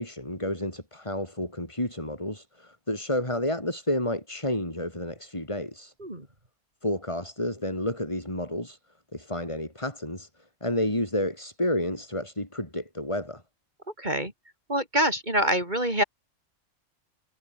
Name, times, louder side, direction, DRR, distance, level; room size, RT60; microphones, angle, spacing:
voice 1, 0.0-5.9 6.8-8.8 9.1-10.3 10.6-13.4, left 1 dB, 25° left, 5.5 m, -30 dB
voice 2, 14.0-14.3 14.7-16.0, right 1 dB, 35° right, 5.8 m, -25 dB
omnidirectional pair, 1.3 m